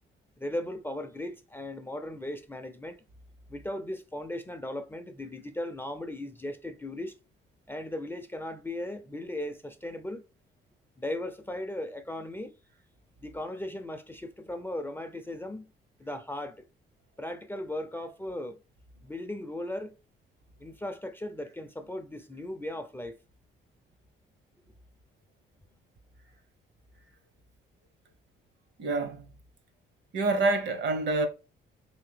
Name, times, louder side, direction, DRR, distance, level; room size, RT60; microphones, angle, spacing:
voice 1, 0.4-3.0 3.5-7.2 7.7-10.2 11.0-12.5 13.2-15.7 16.0-16.7 17.2-18.6 19.0-19.9 20.6-23.2, left 1 dB, 10° left, 0.4 m, -37 dB
voice 2, 28.8-29.3 30.1-31.3, right 3 dB, 65° right, 0.8 m, -27 dB
3.2 x 2.8 x 3.2 m
cardioid pair, 90°, 20 cm